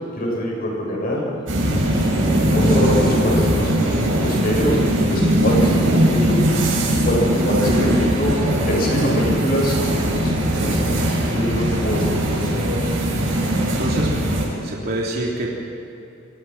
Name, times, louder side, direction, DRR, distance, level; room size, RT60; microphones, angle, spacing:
voice 1, 0.1-1.3 1.7-6.4 6.8-8.3 8.7-10.9 11.2-12.7, left 1 dB, 50° left, -2 dB, 8.0 m, -24 dB
sound 1, 1.5-14.4, right 1 dB, 80° right, 6.8 m, -20 dB
voice 2, 13.7-14.1 14.6-15.6, right 1 dB, 55° right, -3 dB, 3.4 m, -26 dB
28.0 x 23.5 x 5.9 m, 2.9 s
head